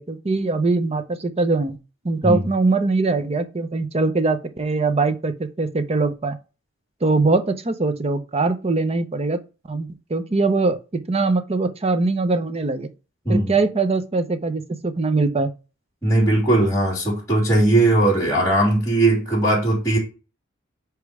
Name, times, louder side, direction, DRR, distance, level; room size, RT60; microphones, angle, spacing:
voice 1, 0.0-1.8 2.0-6.4 7.0-9.4 9.7-10.8 11.1-12.9 13.3-15.5, right 3 dB, 30° right, 0.7 m, -22 dB
voice 2, 16.0-20.0, right 2 dB, 15° left, 2.9 m, -19 dB
5.2 x 4.6 x 4.7 m
head